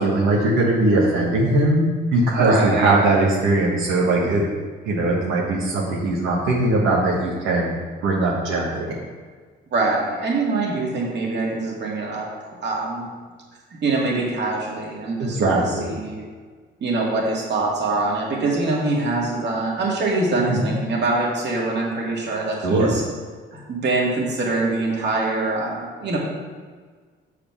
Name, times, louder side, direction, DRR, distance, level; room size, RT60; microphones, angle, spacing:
voice 1, 0.0-1.8 2.1-4.4 4.8-7.7 8.0-8.9 15.2-15.9 20.5-20.7 22.6-22.9, right 2 dB, 90° right, -5 dB, 1.5 m, -20 dB
voice 2, 2.4-2.9 9.7-12.3 12.6-13.0 13.7-15.5 15.8-16.2 16.8-23.0 23.5-26.2, right 3 dB, 60° right, -3 dB, 2.2 m, -24 dB
7.3 x 4.9 x 6.1 m, 1.5 s
cardioid pair, 90°, 20 cm